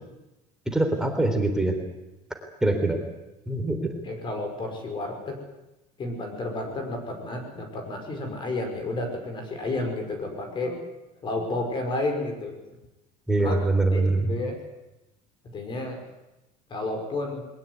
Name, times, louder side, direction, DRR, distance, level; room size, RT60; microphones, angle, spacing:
voice 1, 0.7-1.7 2.6-3.0 3.5-3.9 13.3-14.4, right 2 dB, 5° right, 3 dB, 3.6 m, -23 dB
voice 2, 4.0-5.4 6.0-10.9 11.2-12.6 13.4-13.6 13.9-14.6 15.5-16.0 16.7-17.5, left 2 dB, 30° left, 4 dB, 5.2 m, -31 dB
22.0 x 20.0 x 9.5 m, 0.97 s
cardioid pair, 155°, 17 cm